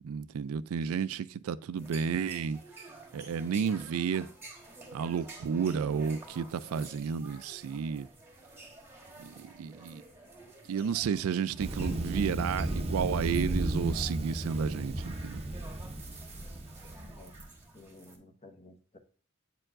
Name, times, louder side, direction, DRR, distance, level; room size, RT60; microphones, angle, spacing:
voice 1, 0.0-2.6 3.1-4.3 4.9-8.1 9.2-10.0 10.7-15.4, right 6 dB, 80° right, 0.3 m, -32 dB
sound 1, 1.8-18.2, right 2 dB, 10° right, 1.2 m, -51 dB
Thunder, 11.6-17.4, right 1 dB, 30° right, 0.7 m, -34 dB
voice 2, 17.0-17.3 17.7-19.0, left 2 dB, 30° left, 1.0 m, -53 dB
8.7 x 4.5 x 2.4 m
head